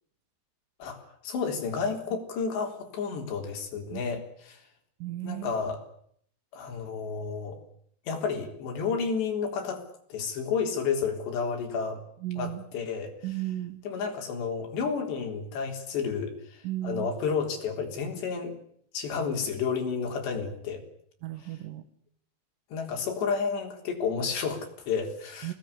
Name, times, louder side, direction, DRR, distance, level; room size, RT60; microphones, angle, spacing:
voice 1, 0.8-4.6 5.2-5.8 6.5-7.6 8.1-9.8 10.1-12.0 12.4-13.1 13.9-18.5 18.9-20.8 22.7-25.5, left 5 dB, 90° left, 3 dB, 5.9 m, -31 dB
voice 2, 5.0-5.5 12.2-12.6 13.2-13.8 16.6-17.1 21.2-21.8 25.4-25.5, right 15 dB, 60° right, 12 dB, 2.8 m, -34 dB
24.0 x 19.0 x 9.9 m, 0.66 s
omnidirectional pair, 4.8 m